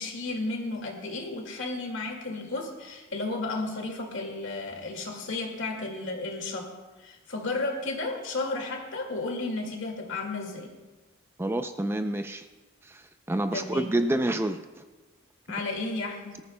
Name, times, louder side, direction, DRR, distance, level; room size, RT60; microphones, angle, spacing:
voice 1, 0.0-6.7 7.0-10.7 13.5-13.9 15.5-16.4, left 2 dB, 65° left, 2 dB, 2.1 m, -33 dB
voice 2, 11.4-12.5 12.8-14.8, right 1 dB, 10° right, 8 dB, 0.4 m, -28 dB
19.5 x 14.0 x 2.2 m, 1.2 s
head